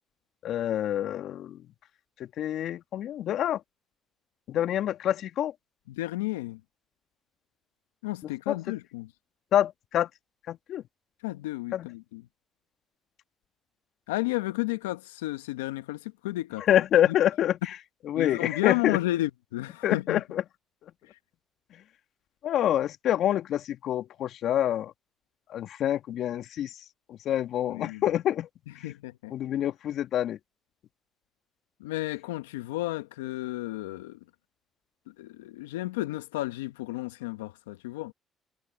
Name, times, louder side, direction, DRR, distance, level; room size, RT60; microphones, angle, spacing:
voice 1, 0.4-1.6 2.2-3.6 4.5-5.5 8.2-8.6 9.5-10.1 10.5-10.8 11.7-11.9 16.7-17.6 18.1-19.0 19.8-20.4 21.7-21.8 22.4-24.9 25.5-26.7 27.1-28.5 28.8-28.9 29.3-30.4, left 11 dB, 65° left, 2.0 m, -27 dB
voice 2, 5.9-6.6 8.0-9.1 11.2-12.2 14.1-16.6 17.1-17.2 18.1-20.2 27.7-28.0 28.8-29.3 31.8-34.2 35.1-38.1, left 18 dB, 90° left, 1.3 m, -32 dB
hypercardioid pair, 55°, 0 cm